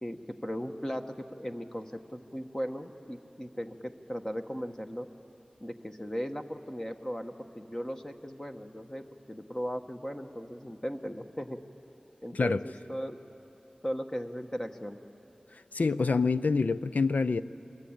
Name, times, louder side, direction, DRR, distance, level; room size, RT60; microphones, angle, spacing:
voice 1, 0.0-5.1 5.6-11.6 12.2-13.2 13.8-15.0, equal, 20° left, 4 dB, 1.3 m, -37 dB
voice 2, 15.7-17.4, left 4 dB, 75° left, 13 dB, 0.5 m, -26 dB
24.0 x 22.5 x 8.8 m, 2.9 s
wide cardioid pair, 40°, 3 cm